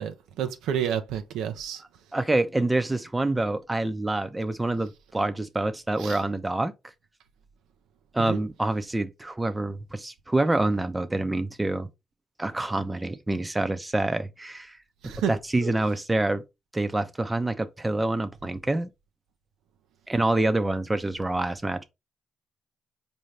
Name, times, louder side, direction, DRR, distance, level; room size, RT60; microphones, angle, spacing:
voice 1, 0.0-1.8 6.0-6.2 8.2-8.4 15.0-15.3 15.6-15.7, right 9 dB, 85° right, 0.5 m, -30 dB
voice 2, 2.1-6.7 8.1-11.9 12.4-14.8 15.0-16.4 16.7-18.9 20.1-21.8, right 2 dB, 15° right, 0.6 m, -26 dB
4.6 x 2.7 x 3.2 m
cardioid pair, 90°, 0 cm